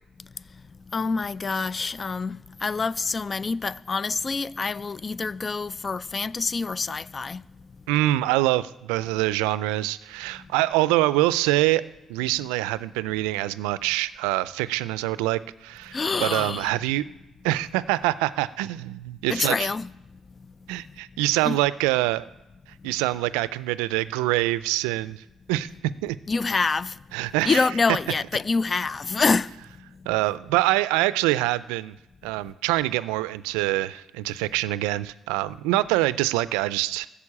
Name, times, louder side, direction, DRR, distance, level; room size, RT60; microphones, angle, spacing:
voice 1, 0.9-7.4 15.9-16.7 19.3-19.9 21.4-21.6 26.3-26.9 27.4-29.5, left 4 dB, 40° left, 0.4 m, -26 dB
voice 2, 7.9-11.8 12.1-17.1 17.4-19.7 20.7-22.3 22.8-25.2 25.5-25.7 26.0-26.2 27.1-27.6 30.1-31.9 32.2-37.1, right 17 dB, 85° right, 0.4 m, -25 dB
13.5 x 7.0 x 8.5 m
hypercardioid pair, 55°, 0 cm